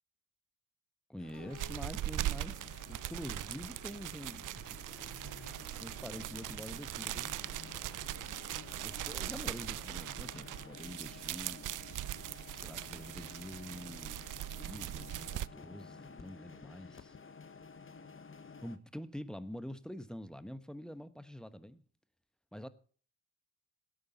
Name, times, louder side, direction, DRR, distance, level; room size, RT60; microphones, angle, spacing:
voice 1, 1.1-7.4 8.8-11.7 12.5-17.1 18.6-21.8 22.5-22.7, equal, ahead, 1.1 m, -46 dB
sound 1, 1.2-18.8, left 5 dB, 25° left, 1.3 m, -52 dB
sound 2, 1.3-4.0 4.6-7.1, left 4 dB, 55° left, 3.6 m, -60 dB
sound 3, 1.3-15.5, right 15 dB, 45° right, 0.5 m, -40 dB
18.5 x 8.9 x 4.0 m
hypercardioid pair, 45°, 47 cm